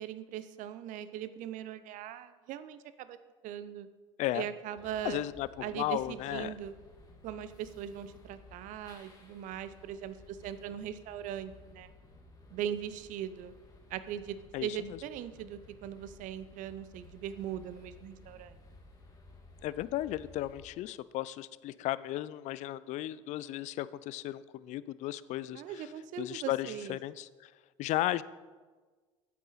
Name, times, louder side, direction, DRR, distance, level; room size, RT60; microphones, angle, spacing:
voice 1, 0.0-3.2 3.4-3.9 4.3-5.2 5.6-6.7 7.2-11.9 12.5-13.5 13.9-18.6 25.5-27.0, right 10 dB, 55° right, 14 dB, 0.6 m, -40 dB
sound 1, 4.8-20.7, left 2 dB, 25° left, 1.9 m, -56 dB
voice 2, 5.0-6.5 14.5-14.7 19.6-25.6 26.2-27.5 27.8-28.2, left 14 dB, 50° left, 18 dB, 0.4 m, -35 dB
8.4 x 8.3 x 4.1 m, 1.4 s
hypercardioid pair, 75°, 16 cm